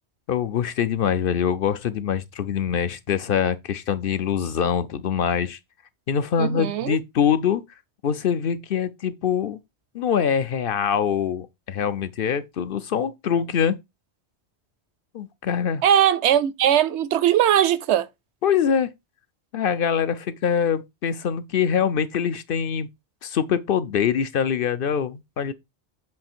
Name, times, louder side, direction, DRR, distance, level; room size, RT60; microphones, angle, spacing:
voice 1, 0.3-5.6 6.1-7.6 8.0-9.6 9.9-13.8 15.1-15.8 18.4-18.9 19.5-22.9 23.2-25.5, left 8 dB, 60° left, 0.8 m, -24 dB
voice 2, 6.4-7.0 15.8-18.1, right 10 dB, 80° right, 0.9 m, -20 dB
7.6 x 3.2 x 4.4 m
omnidirectional pair, 1.1 m